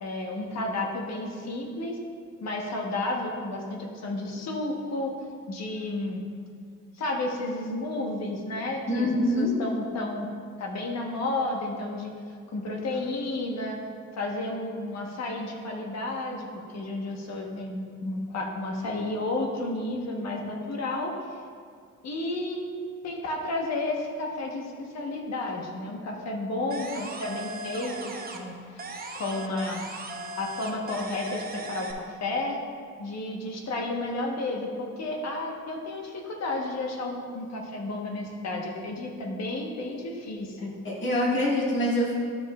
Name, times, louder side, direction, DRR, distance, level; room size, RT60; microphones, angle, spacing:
voice 1, 0.0-2.0 2.4-5.1 5.5-6.2 6.9-9.1 9.4-10.3 10.6-12.1 12.5-13.8 14.1-21.4 22.0-22.6 23.0-28.8 29.1-29.8 30.4-32.6 33.0-40.7, left 2 dB, 60° left, 0 dB, 1.3 m, -32 dB
voice 2, 8.9-9.5 40.8-42.1, left 1 dB, 40° left, -5 dB, 1.9 m, -25 dB
sound 1, 26.7-28.5 28.8-31.9, right 2 dB, 30° right, 0.9 m, -38 dB
12.0 x 5.2 x 2.4 m, 2.2 s
cardioid pair, 90°, 30 cm